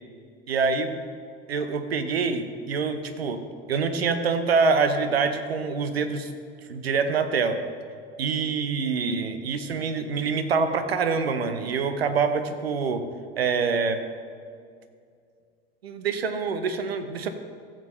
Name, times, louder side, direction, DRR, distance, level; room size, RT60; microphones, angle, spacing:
voice 1, 0.5-1.0 1.5-3.4 3.7-6.3 6.7-7.6 8.2-13.0 13.4-14.0 15.8-17.3, right 5 dB, 80° right, 9 dB, 0.7 m, -25 dB
15.0 x 7.5 x 3.2 m, 2.2 s
figure-of-eight pair, 65°, 30 cm